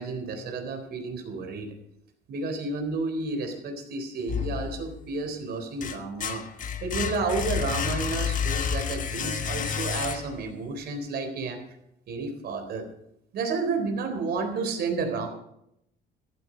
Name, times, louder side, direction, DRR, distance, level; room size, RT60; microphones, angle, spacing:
voice 1, 0.0-1.7 2.3-6.4 6.8-11.6 12.1-12.9 13.3-15.3, right 3 dB, 65° right, 6 dB, 3.9 m, -31 dB
sound 1, 4.3-5.1 5.5-10.6, left 7 dB, 45° left, 1.3 m, -30 dB
15.0 x 12.5 x 5.1 m, 0.77 s
cardioid pair, 105°, 18 cm